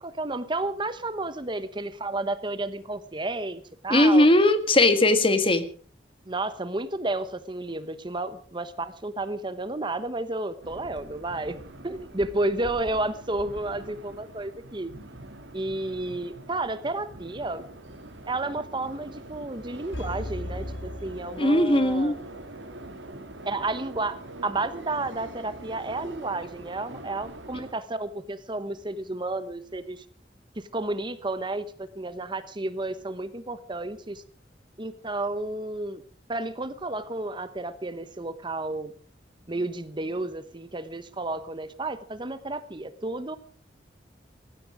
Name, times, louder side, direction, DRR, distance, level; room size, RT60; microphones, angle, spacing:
voice 1, 0.0-4.3 6.3-11.6 11.8-14.9 15.5-17.6 18.3-22.1 23.4-30.0 30.6-34.2 34.8-36.0 36.3-38.9 39.5-43.4, right 2 dB, 25° right, 13 dB, 1.0 m, -31 dB
voice 2, 3.9-5.6 21.4-22.2, left 1 dB, 30° left, 10 dB, 1.8 m, -19 dB
sound 1, 10.6-27.7, right 1 dB, 85° right, 2.9 m, -44 dB
sound 2, 19.9-22.1 22.4-22.5, left 1 dB, 80° left, 1.4 m, -37 dB
19.0 x 15.0 x 5.0 m, 0.43 s
head